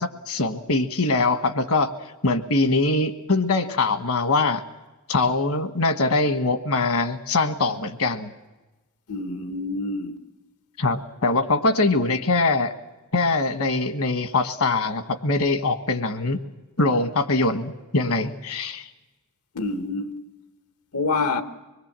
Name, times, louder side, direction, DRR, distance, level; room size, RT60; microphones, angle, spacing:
voice 1, 0.0-1.9 2.2-4.6 5.1-8.3 10.8-12.7 13.1-16.4 16.8-18.9, left 3 dB, 70° left, 1.4 m, -22 dB
voice 2, 9.1-10.1 19.5-20.1 20.9-21.4, left 3 dB, 85° left, 1.2 m, -26 dB
25.0 x 21.0 x 7.5 m
head